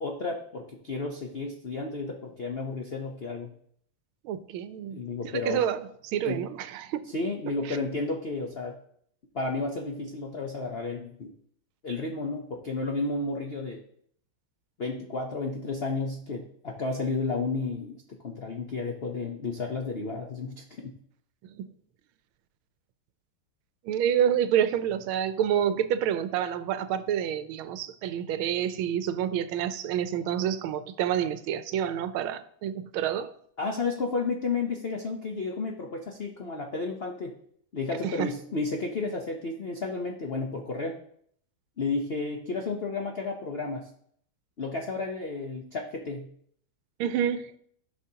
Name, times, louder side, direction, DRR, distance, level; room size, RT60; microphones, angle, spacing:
voice 1, 0.0-3.5 4.9-5.6 6.2-6.4 7.1-8.8 9.3-11.3 11.8-13.8 14.8-21.0 33.6-37.3 37.7-40.9 41.8-43.9 44.6-46.3, left 3 dB, 75° left, 1 dB, 0.5 m, -32 dB
voice 2, 4.2-5.0 5.3-7.1 7.7-7.8 21.4-21.6 23.8-33.3 38.0-38.3 47.0-47.5, right 9 dB, 85° right, 12 dB, 1.4 m, -28 dB
14.5 x 5.7 x 2.8 m, 0.65 s
omnidirectional pair, 2.2 m